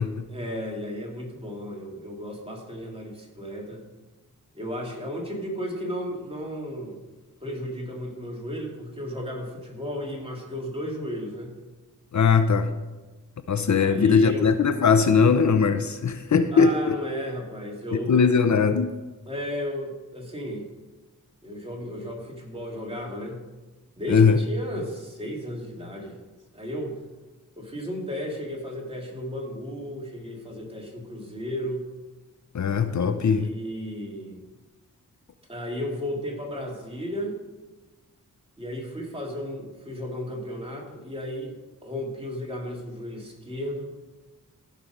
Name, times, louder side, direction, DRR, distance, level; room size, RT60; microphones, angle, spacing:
voice 1, 0.3-3.8 4.5-7.0 7.4-11.5 13.8-14.4 16.5-18.2 19.3-20.7 21.4-23.4 23.9-26.2 26.5-27.0 27.6-31.9 33.3-34.4 35.5-37.4 38.6-41.6 41.8-43.9, equal, 15° right, -2 dB, 2.9 m, -34 dB
voice 2, 12.1-12.7 13.5-17.0 18.1-18.9 24.1-24.4 32.5-33.5, left 5 dB, 60° left, 10 dB, 0.7 m, -20 dB
15.5 x 5.7 x 5.0 m, 1.2 s
wide cardioid pair, 80°, 32 cm